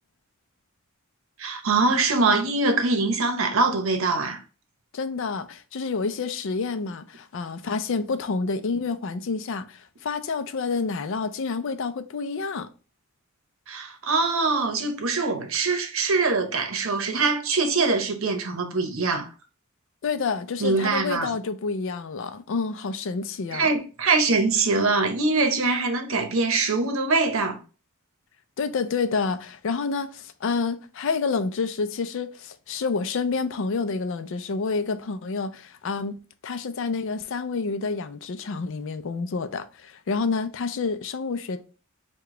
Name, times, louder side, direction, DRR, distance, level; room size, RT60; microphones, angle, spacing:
voice 1, 1.4-4.4 13.7-19.3 20.6-21.3 23.5-27.6, right 3 dB, 70° right, 0.8 m, -23 dB
voice 2, 4.9-12.7 20.0-23.7 28.6-36.2 36.4-41.6, left 4 dB, 60° left, 0.4 m, -28 dB
4.8 x 2.3 x 3.6 m
head